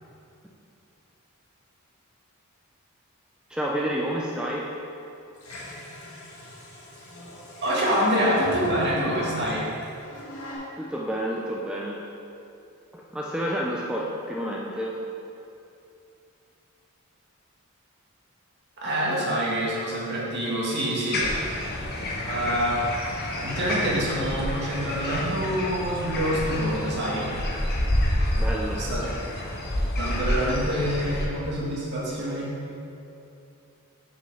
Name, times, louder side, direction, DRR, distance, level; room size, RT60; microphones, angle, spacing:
voice 1, 3.5-4.7 10.8-12.1 12.9-15.0 19.3-19.4 28.4-28.9, equal, 5° right, -4 dB, 0.5 m, -30 dB
sound 1, 5.4-10.6, equal, 75° left, 1.7 m, -42 dB
voice 2, 7.6-9.7 18.8-21.6 22.2-27.3 28.7-29.0 30.0-32.5, equal, 50° right, -6 dB, 1.9 m, -26 dB
sound 2, 21.1-31.3, left 1 dB, 45° left, 1.0 m, -29 dB
6.4 x 5.5 x 5.5 m, 2.7 s
head